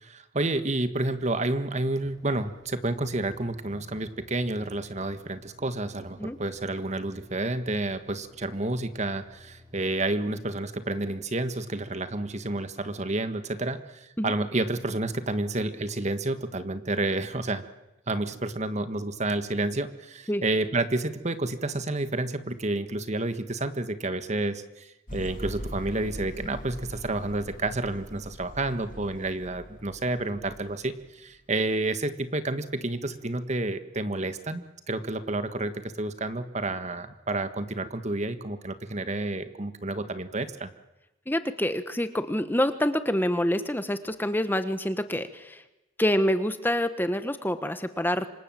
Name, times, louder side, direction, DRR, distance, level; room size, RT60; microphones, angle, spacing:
voice 1, 0.0-17.6 18.1-40.7, right 2 dB, 35° right, 10 dB, 1.6 m, -30 dB
sound 1, 2.0-10.0, left 2 dB, 20° right, 5.0 m, -56 dB
sound 2, 25.1-31.1 31.7-31.8, equal, 45° left, 6.7 m, -41 dB
voice 2, 41.3-45.6 46.0-48.3, left 1 dB, 10° left, 10 dB, 1.2 m, -27 dB
27.0 x 26.0 x 7.7 m, 0.98 s
head